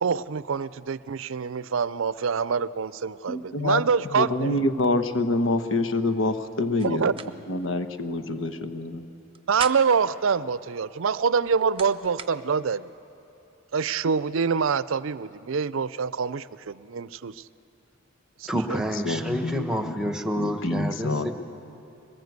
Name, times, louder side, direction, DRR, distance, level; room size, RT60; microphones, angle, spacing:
voice 1, 0.0-4.5 6.8-7.1 9.5-12.9 13.7-17.3 18.4-18.8, right 6 dB, 75° right, 17 dB, 0.5 m, -25 dB
voice 2, 3.3-7.1 7.5-9.1 19.0-21.3, left 2 dB, 70° left, 9 dB, 1.2 m, -27 dB
sound 1, 6.8-7.3 7.6-7.7 9.2-10.1 11.2-12.3, right 6 dB, 25° right, 0.8 m, -38 dB
voice 3, 18.5-21.3, equal, 5° right, 6 dB, 1.1 m, -28 dB
22.0 x 19.5 x 8.1 m, 2.8 s
head